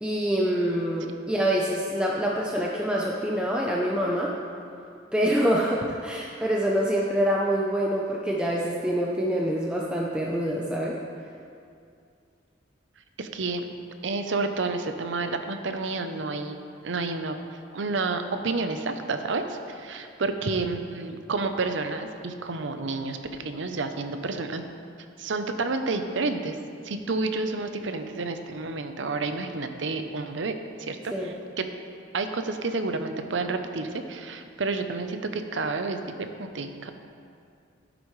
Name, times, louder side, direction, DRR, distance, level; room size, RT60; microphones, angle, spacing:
voice 1, 0.0-4.3 5.1-10.9 31.1-31.3, equal, 5° right, -3 dB, 0.6 m, -26 dB
voice 2, 13.2-13.7 14.0-16.6 16.8-17.4 17.7-24.6 25.2-26.6 26.8-31.7 32.1-36.9, right 3 dB, 80° right, 7 dB, 0.7 m, -30 dB
11.5 x 10.0 x 3.2 m, 2.4 s
head